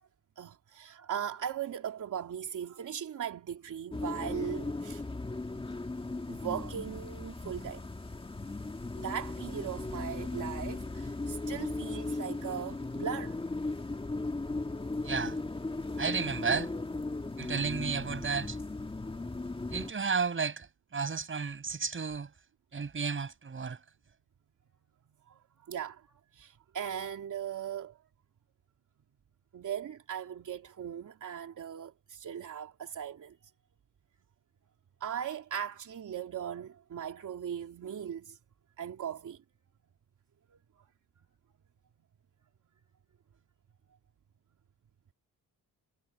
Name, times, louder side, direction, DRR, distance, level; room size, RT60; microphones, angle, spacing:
voice 1, 0.4-5.0 6.3-7.8 9.0-13.4 25.3-25.4 25.7-28.0 29.5-33.3 35.0-38.4 38.8-39.4, right 9 dB, 55° right, 3.0 m, -38 dB
sound 1, 3.9-19.9, left 2 dB, 15° left, 1.8 m, -37 dB
voice 2, 15.0-15.4 16.0-16.7 17.4-18.6 19.7-20.7 20.9-22.3 22.7-23.8, right 5 dB, 35° right, 6.2 m, -32 dB
cardioid pair, 120°, 36 cm